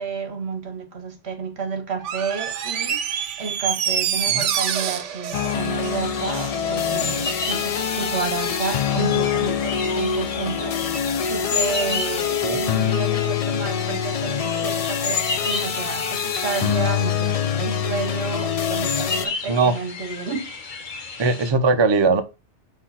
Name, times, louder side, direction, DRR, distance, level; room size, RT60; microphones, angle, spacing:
voice 1, 0.0-3.1 3.4-20.5, right 5 dB, 65° right, 1.3 m, -30 dB
Door, 2.0-6.6 6.9-7.0, right 8 dB, 85° right, 1.0 m, -26 dB
sound 1, 5.3-19.3, left 8 dB, 75° left, 0.3 m, -25 dB
sound 2, 5.5-21.5, left 4 dB, 45° left, 0.9 m, -32 dB
voice 2, 21.2-22.2, right 4 dB, 35° right, 0.4 m, -19 dB
6.4 x 2.8 x 5.5 m
omnidirectional pair, 1.2 m